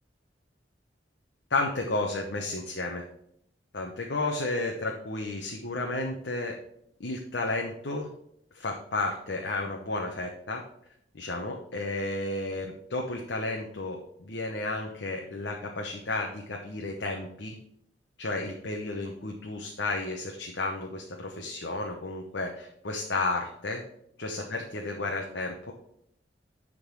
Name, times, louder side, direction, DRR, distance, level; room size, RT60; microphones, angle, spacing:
voice 1, 1.5-3.0 3.7-6.5 7.0-8.1 8.5-10.6 11.1-17.6 18.2-23.8 24.2-25.7, left 2 dB, 70° left, 1 dB, 0.9 m, -32 dB
10.5 x 3.8 x 4.7 m, 0.72 s
head